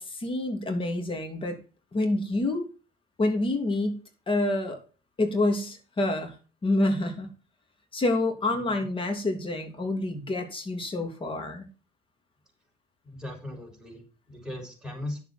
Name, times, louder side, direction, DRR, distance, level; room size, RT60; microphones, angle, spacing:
voice 1, 0.0-1.6 1.9-2.7 3.2-4.8 5.2-6.3 6.6-7.3 7.9-11.7, left 2 dB, 30° left, 4 dB, 3.0 m, -27 dB
voice 2, 13.0-15.2, left 1 dB, 5° right, -1 dB, 6.3 m, -38 dB
10.5 x 7.5 x 4.4 m, 0.36 s
cardioid pair, 110°, 17 cm